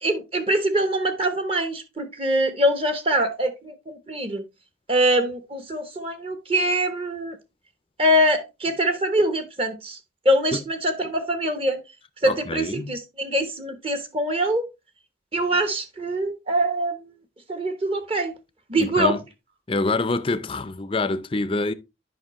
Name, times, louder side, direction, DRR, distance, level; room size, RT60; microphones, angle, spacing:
voice 1, 0.0-4.4 4.9-7.4 8.0-10.0 10.2-11.8 12.2-14.7 15.3-17.0 17.5-18.3 18.7-19.2, right 1 dB, 30° right, 1.0 m, -23 dB
voice 2, 12.2-13.0 18.8-19.2 19.7-21.7, left 3 dB, 30° left, 0.5 m, -26 dB
9.7 x 5.4 x 3.0 m
head